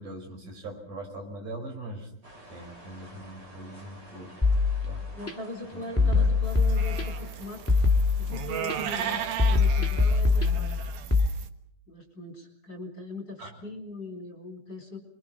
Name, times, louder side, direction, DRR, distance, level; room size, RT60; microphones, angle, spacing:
voice 1, 0.0-4.4 4.8-5.1 5.7-6.4 13.4-13.6, right 1 dB, 60° right, 3 dB, 6.6 m, -41 dB
sound 1, 2.2-10.5, right 1 dB, 30° right, 4.6 m, -51 dB
sound 2, 4.4-5.3 6.0-7.3 7.7-8.8 9.4-11.3, left 4 dB, 5° left, 1.1 m, -23 dB
voice 2, 5.1-7.6 8.2-10.8 11.9-15.0, left 1 dB, 30° left, 4 dB, 4.6 m, -40 dB
sound 3, 6.4-11.5, right 9 dB, 80° right, 3.2 m, -36 dB
27.5 x 24.0 x 5.7 m, 0.68 s
omnidirectional pair, 4.1 m